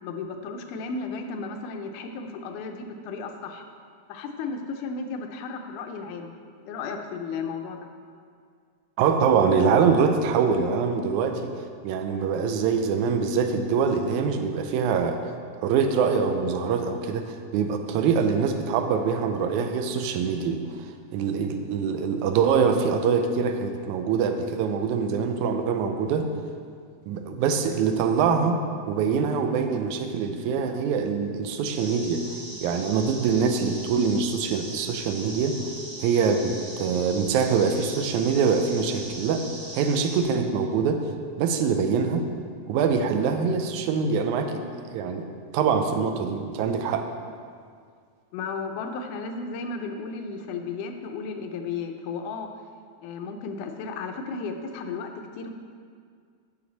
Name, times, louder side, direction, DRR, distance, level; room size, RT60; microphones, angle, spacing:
voice 1, 0.0-3.6 4.1-6.3 6.7-7.8 48.3-52.5 53.0-55.5, left 4 dB, 80° left, 5 dB, 2.2 m, -34 dB
voice 2, 9.0-11.5 11.8-26.3 27.1-28.6 28.9-35.7 36.0-39.5 39.7-41.1 41.4-42.2 42.7-45.3 45.5-47.1, right 6 dB, 80° right, 6 dB, 2.0 m, -24 dB
sound 1, 31.7-40.2, right 1 dB, 40° right, 2.9 m, -40 dB
9.6 x 7.1 x 4.0 m, 2.1 s
omnidirectional pair, 3.6 m